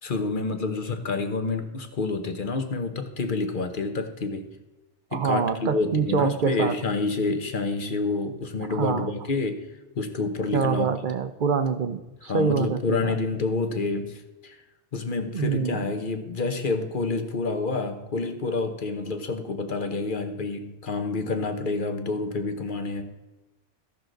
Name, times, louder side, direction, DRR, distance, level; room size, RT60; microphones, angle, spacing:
voice 1, 0.0-4.5 5.1-9.7 9.9-10.9 12.2-14.6 14.9-23.0, left 3 dB, 50° left, 7 dB, 1.1 m, -28 dB
voice 2, 5.1-6.8 8.7-9.1 10.5-13.1 15.3-15.8, right 6 dB, 50° right, 11 dB, 0.7 m, -25 dB
15.5 x 6.1 x 3.9 m, 1.1 s
omnidirectional pair, 1.2 m